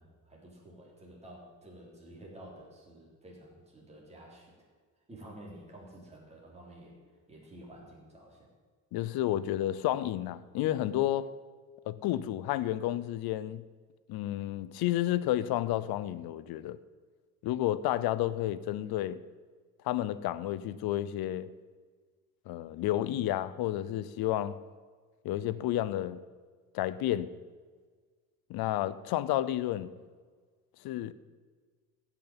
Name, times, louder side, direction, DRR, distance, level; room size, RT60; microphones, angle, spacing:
voice 1, 0.0-4.7 5.1-7.0 7.3-8.5, right 1 dB, 15° right, 3.6 m, -51 dB
voice 2, 8.9-11.3 11.9-13.6 14.1-16.8 17.4-19.2 19.8-21.5 22.5-24.6 25.2-26.2 26.7-27.3 28.5-29.9 30.8-31.1, left 13 dB, 75° left, 0.7 m, -31 dB
15.5 x 6.2 x 8.8 m
cardioid pair, 160°, 38 cm